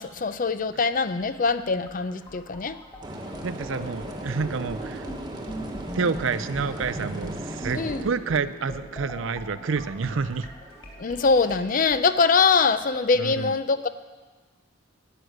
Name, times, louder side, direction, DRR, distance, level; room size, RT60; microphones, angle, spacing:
voice 1, 0.0-2.8 7.7-8.0 11.0-13.9, left 4 dB, 40° left, 12 dB, 0.5 m, -23 dB
sound 1, 1.0-12.0, right 1 dB, 20° left, 2.5 m, -41 dB
sound 2, 3.0-8.0, right 1 dB, 20° right, 1.2 m, -37 dB
voice 2, 3.4-5.1 5.9-10.5 13.2-13.5, right 5 dB, 65° right, 13 dB, 0.5 m, -29 dB
11.0 x 8.1 x 9.4 m, 1.3 s
head